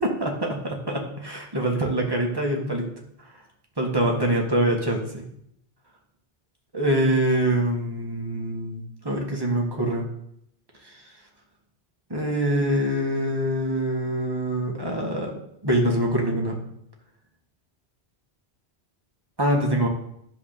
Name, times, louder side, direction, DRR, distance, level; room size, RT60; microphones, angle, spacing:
voice 1, 0.0-2.9 3.8-5.2 6.7-10.1 10.8-11.0 12.1-15.3 15.6-16.6 19.4-19.9, right 1 dB, 20° right, 0 dB, 1.8 m, -24 dB
11.5 x 4.9 x 6.7 m, 0.75 s
omnidirectional pair, 1.1 m